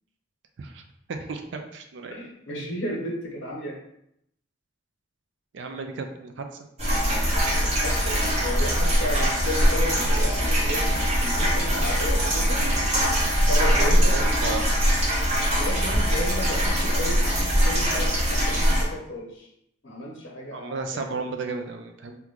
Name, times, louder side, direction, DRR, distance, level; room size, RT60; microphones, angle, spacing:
voice 1, 1.1-2.2 5.5-6.5 13.5-14.7 20.5-22.2, right 4 dB, 65° right, 5 dB, 0.4 m, -34 dB
voice 2, 2.1-3.8 7.1-7.2 7.6-12.7 13.5-14.2 15.6-19.5 19.8-21.3, equal, 70° left, -2 dB, 0.9 m, -33 dB
sound 1, 6.8-18.8, equal, 35° right, 0.7 m, -22 dB
3.0 x 2.2 x 3.7 m, 0.77 s
head